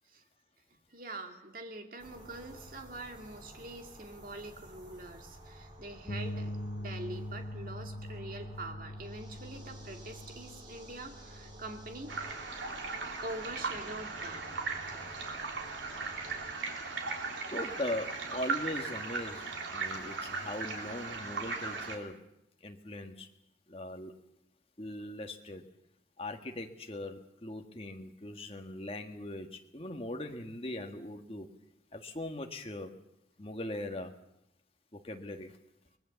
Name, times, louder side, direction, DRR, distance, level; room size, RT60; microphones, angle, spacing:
voice 1, 0.9-12.1 13.2-14.5, right 2 dB, 50° right, 4 dB, 2.4 m, -44 dB
sound 1, 2.0-16.5, equal, 25° right, 4.1 m, -53 dB
Bass guitar, 6.1-12.3, left 1 dB, 70° left, 1.2 m, -42 dB
sound 2, 12.1-22.0, right 4 dB, 90° right, 3.4 m, -38 dB
voice 2, 17.5-22.2 22.6-23.3 23.7-24.1 24.8-25.6 26.2-31.5 31.9-32.9 33.4-34.1 34.9-35.6, left 1 dB, 30° left, 4 dB, 1.7 m, -40 dB
24.0 x 20.0 x 7.1 m, 0.82 s
head